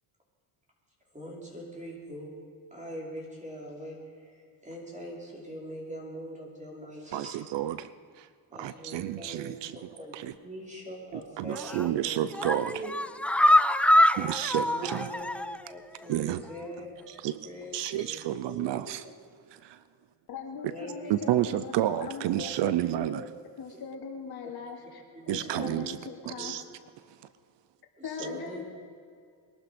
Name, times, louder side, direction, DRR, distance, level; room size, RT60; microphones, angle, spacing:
voice 1, 1.1-2.3 2.7-7.3 8.5-10.1 10.4-13.0 14.6-17.0 17.4-18.2 18.5-18.8 20.7-21.4 22.4-22.5 25.1-25.9 26.3-26.5 28.0-28.7, equal, 15° right, -3 dB, 5.1 m, -42 dB
voice 2, 7.1-7.9 8.2-8.3 8.6-9.8 10.1-10.3 11.4-12.7 14.2-15.1 16.1-16.4 17.2-17.5 17.7-19.0 19.5-19.8 21.1-23.2 25.3-26.0 26.3-26.6, right 13 dB, 70° right, 14 dB, 0.7 m, -30 dB
sound 1, 11.5-11.9 12.3-15.7 16.0-16.1 16.5-16.6, left 1 dB, 5° left, 0.3 m, -24 dB
voice 3, 20.3-21.7 22.0-23.2 23.5-26.5 28.0-28.6, left 6 dB, 55° left, 1 dB, 2.6 m, -40 dB
22.5 x 12.5 x 5.2 m, 2.2 s
cardioid pair, 105°, 44 cm